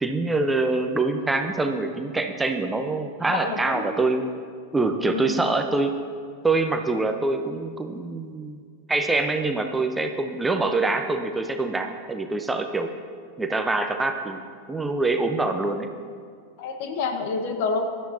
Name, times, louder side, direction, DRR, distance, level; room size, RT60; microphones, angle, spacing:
voice 1, 0.0-4.3 4.7-6.0 6.4-8.6 8.9-12.9 13.4-14.4 14.7-15.9, right 3 dB, 10° right, 5 dB, 0.9 m, -25 dB
voice 2, 3.3-3.9 5.1-5.4 16.6-17.8, left 4 dB, 50° left, 6 dB, 1.4 m, -28 dB
23.0 x 12.5 x 2.9 m, 2.1 s
figure-of-eight pair, 90°, 0 cm